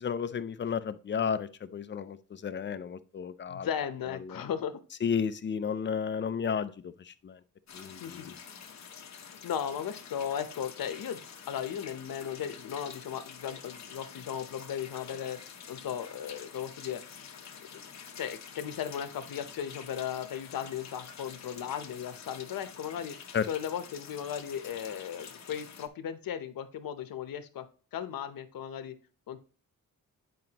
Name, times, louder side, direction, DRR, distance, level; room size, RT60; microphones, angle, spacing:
voice 1, 0.0-3.7 4.2-4.4 5.0-7.4 7.7-8.3 23.3-23.5, left 7 dB, 35° left, 12 dB, 0.4 m, -33 dB
voice 2, 3.5-4.8 8.0-8.3 9.2-15.4 15.7-17.3 17.7-17.8 18.2-23.2 23.5-27.6 27.9-29.0 29.3-29.4, left 9 dB, 85° left, 10 dB, 0.8 m, -36 dB
sound 1, 7.7-25.9, left 7 dB, 55° left, 0.9 m, -48 dB
9.4 x 5.1 x 2.9 m, 0.38 s
wide cardioid pair, 160°, 34 cm